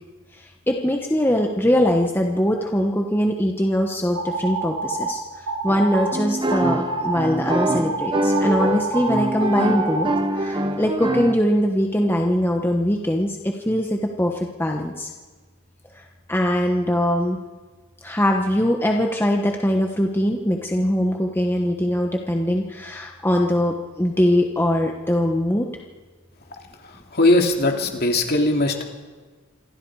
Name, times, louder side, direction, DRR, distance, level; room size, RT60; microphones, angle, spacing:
voice 1, 0.7-5.2 5.6-10.1 10.4-15.1 16.3-17.4 18.0-25.7, equal, 10° left, 2 dB, 1.2 m, -22 dB
sound 1, 4.1-5.1 5.5-6.1 6.5-7.1 7.5-10.2, right 4 dB, 90° right, 5.0 m, -27 dB
sound 2, 5.7-11.3, right 1 dB, 20° right, 1.2 m, -25 dB
voice 2, 27.1-28.8, left 2 dB, 45° left, 3 dB, 2.7 m, -19 dB
27.5 x 23.0 x 4.9 m, 1.4 s
head